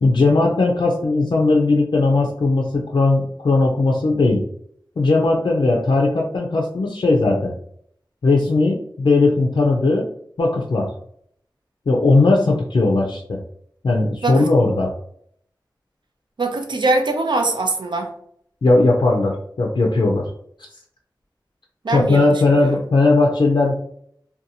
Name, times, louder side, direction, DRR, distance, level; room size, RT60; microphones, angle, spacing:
voice 1, 0.0-4.4 5.0-7.5 8.2-10.1 10.4-10.9 11.9-13.4 13.8-14.9 18.6-20.3 21.9-23.7, left 3 dB, 85° left, -1 dB, 0.4 m, -18 dB
voice 2, 16.4-18.1 21.8-22.3 22.6-22.8, right 2 dB, 80° right, 4 dB, 0.5 m, -22 dB
2.6 x 2.2 x 2.7 m, 0.67 s
wide cardioid pair, 55°, 8 cm